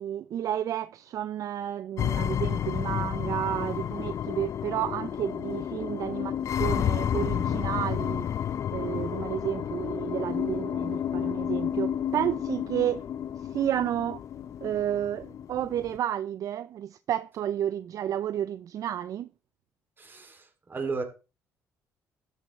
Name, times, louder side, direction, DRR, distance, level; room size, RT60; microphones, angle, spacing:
voice 1, 0.0-8.3 8.7-13.1 13.4-14.2 14.6-19.3, right 10 dB, 60° right, 0.4 m, -31 dB
sound 1, 2.0-16.0, left 9 dB, 55° left, 0.4 m, -31 dB
voice 2, 20.0-21.0, right 4 dB, 35° right, 2.6 m, -34 dB
12.0 x 8.4 x 3.1 m
supercardioid pair, 70°, 6 cm